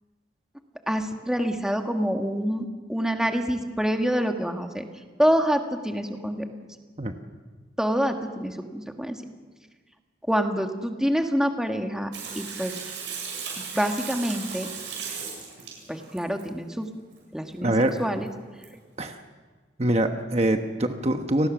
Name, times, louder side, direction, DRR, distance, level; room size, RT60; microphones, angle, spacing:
voice 1, 0.9-4.8 5.2-6.5 7.8-9.2 10.3-12.7 13.6-14.7 15.9-16.9 17.3-17.7 18.0-18.3, equal, 5° right, 4 dB, 1.5 m, -26 dB
Water tap faucet / Sink (filling or washing), 12.1-16.4 17.9-18.0 18.3-18.4 18.6-18.7, right 6 dB, 90° right, 7.9 m, -36 dB
voice 2, 17.6-17.9 19.0-19.2 19.8-21.5, right 1 dB, 35° right, 6 dB, 1.2 m, -24 dB
30.0 x 19.0 x 6.2 m, 1.4 s
head